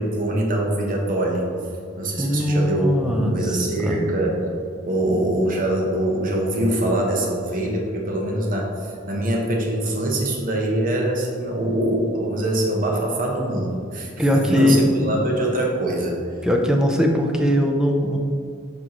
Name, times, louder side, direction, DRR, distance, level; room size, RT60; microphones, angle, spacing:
voice 1, 0.0-1.5 2.0-4.4 4.8-16.2, right 1 dB, 45° right, 0 dB, 0.9 m, -23 dB
voice 2, 2.2-4.1 5.1-5.2 14.2-15.2 16.4-18.2, equal, 5° right, 2 dB, 0.5 m, -20 dB
7.1 x 4.7 x 3.0 m, 2.3 s
head